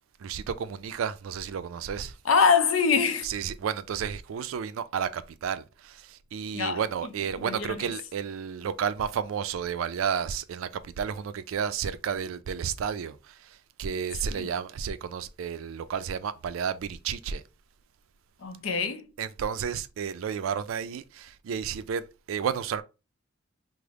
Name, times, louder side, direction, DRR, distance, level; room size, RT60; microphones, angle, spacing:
voice 1, 0.2-2.1 3.2-13.2 13.8-17.4 19.2-22.8, right 7 dB, 90° right, 0.3 m, -32 dB
voice 2, 2.3-3.3 6.5-6.8 7.4-7.8 14.3-14.5 18.4-19.1, left 5 dB, 85° left, 0.5 m, -24 dB
3.3 x 2.0 x 3.5 m
head